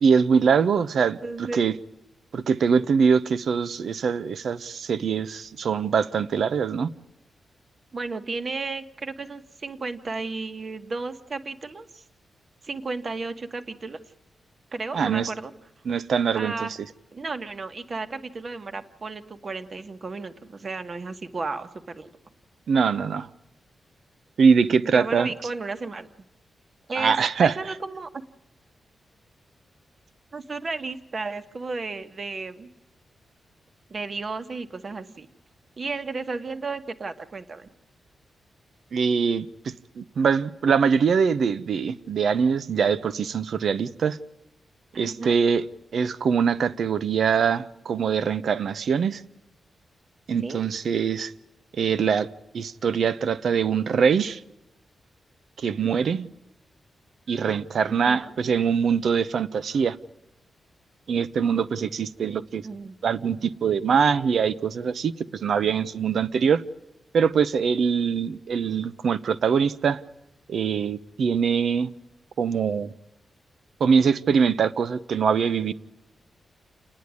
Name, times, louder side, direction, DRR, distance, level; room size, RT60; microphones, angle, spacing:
voice 1, 0.0-1.7 2.3-6.9 14.9-15.3 15.9-16.7 22.7-23.3 24.4-25.3 27.0-27.5 38.9-44.2 45.0-45.6 45.9-49.2 50.3-51.3 51.7-52.3 52.5-54.4 55.6-56.3 57.3-60.0 61.1-62.7 63.0-65.1 65.4-66.6 67.1-70.0 70.5-71.9 72.4-72.9 73.8-75.7, right 6 dB, 65° right, 0.8 m, -23 dB
voice 2, 1.0-1.7 7.9-12.0 12.6-14.0 14.7-15.5 16.3-16.7 17.1-22.1 24.8-26.1 26.9-28.1 30.3-32.7 33.9-35.3 35.8-37.7 44.9-45.4 50.4-50.6 57.9-58.3 62.6-63.0, right 3 dB, 35° right, 1.3 m, -33 dB
29.0 x 10.0 x 9.6 m
wide cardioid pair, 140°, 0 cm